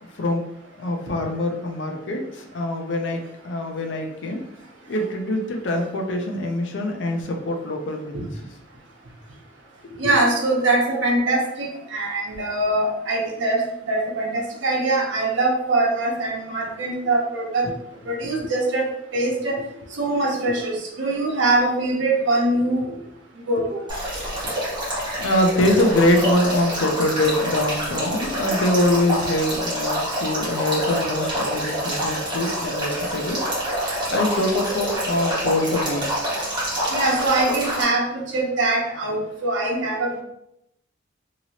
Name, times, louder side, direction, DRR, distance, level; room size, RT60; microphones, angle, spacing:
voice 1, 0.8-4.4 4.9-8.3 9.9-10.2 17.6-17.7 18.4-18.5 22.9-23.0 24.3-24.5 25.2-33.4 34.1-36.0, left 1 dB, 70° left, 2 dB, 0.5 m, -24 dB
voice 2, 10.0-17.6 18.1-19.6 20.0-22.8 23.5-23.8 36.9-40.2, right 2 dB, 75° right, -2 dB, 0.8 m, -23 dB
Male speech man speaking / Stream / Trickle dribble, 23.9-37.8, equal, 25° right, 1.2 m, -27 dB
2.9 x 2.8 x 2.8 m, 0.80 s
head